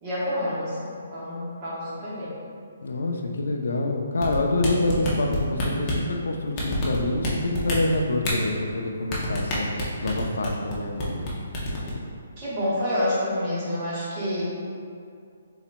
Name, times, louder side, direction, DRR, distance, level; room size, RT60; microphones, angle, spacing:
voice 1, 0.0-2.3 12.4-14.4, left 1 dB, 20° right, -9 dB, 1.2 m, -28 dB
voice 2, 2.8-9.7 10.0-11.3, left 2 dB, 90° left, 2 dB, 0.6 m, -26 dB
sound 1, 4.2-6.1 6.6-7.3 7.5-8.3 9.1-10.7 11.0-11.3 11.5-11.9, left 1 dB, 15° left, 0.6 m, -27 dB
5.7 x 4.0 x 2.2 m, 2.3 s
hypercardioid pair, 175°, 0 cm